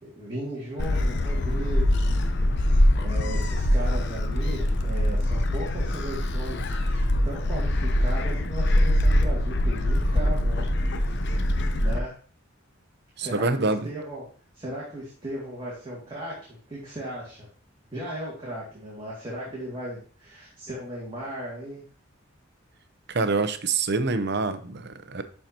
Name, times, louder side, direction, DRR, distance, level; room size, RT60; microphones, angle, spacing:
voice 1, 0.0-2.1 3.0-10.7 11.1-11.2 11.8-12.1 13.2-14.2 14.5-16.4 16.7-17.5 17.9-21.8, equal, 25° right, -6 dB, 2.3 m, -36 dB
Gull seagull, 0.8-12.0, left 1 dB, 60° left, 0.7 m, -23 dB
voice 2, 13.2-13.9 23.1-25.2, right 3 dB, 55° right, 10 dB, 0.7 m, -26 dB
11.0 x 4.4 x 2.9 m, 0.42 s
head